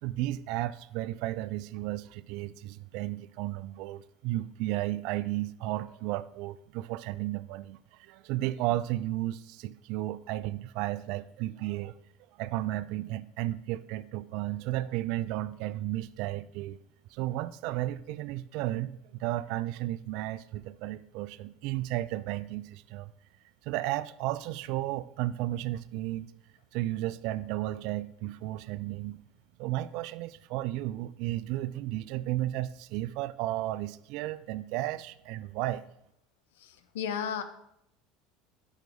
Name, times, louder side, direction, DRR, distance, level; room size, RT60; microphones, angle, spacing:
voice 1, 0.0-11.9 12.4-16.8 17.1-23.1 23.6-26.3 26.7-29.2 29.6-35.8, right 15 dB, 65° right, 16 dB, 0.3 m, -33 dB
voice 2, 36.6-37.4, left 8 dB, 80° left, 10 dB, 0.6 m, -34 dB
5.2 x 4.6 x 6.0 m, 0.76 s
hypercardioid pair, 90°, 0 cm